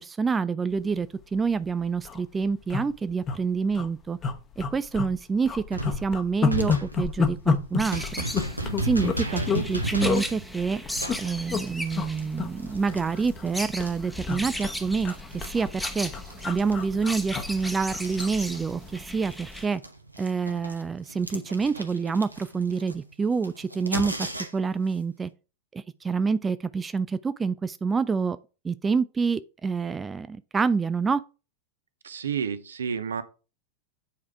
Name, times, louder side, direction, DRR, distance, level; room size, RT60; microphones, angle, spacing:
voice 1, 0.0-4.2 4.6-8.2 8.8-10.8 11.2-16.1 16.4-19.8 20.2-25.3 25.7-28.4 28.6-31.2, right 5 dB, 15° right, 0.4 m, -27 dB
sound 1, 1.2-1.4 1.7-1.8 2.0-2.2 2.7-3.4 3.7-3.9 4.2-5.1 5.5-9.7 10.0-10.2 10.9-11.6 11.9-12.1 12.4-13.5 13.8-18.3 18.7-18.9, left 5 dB, 25° left, 1.0 m, -29 dB
sound 2, 5.7-14.7 15.0-19.0 19.3-24.8, right 1 dB, 85° right, 1.1 m, -35 dB
sound 3, 7.8-19.6, equal, ahead, 1.0 m, -37 dB
voice 2, 8.6-9.6 32.0-33.2, right 7 dB, 70° right, 0.8 m, -32 dB
8.5 x 4.8 x 4.8 m
figure-of-eight pair, 90°, 0 cm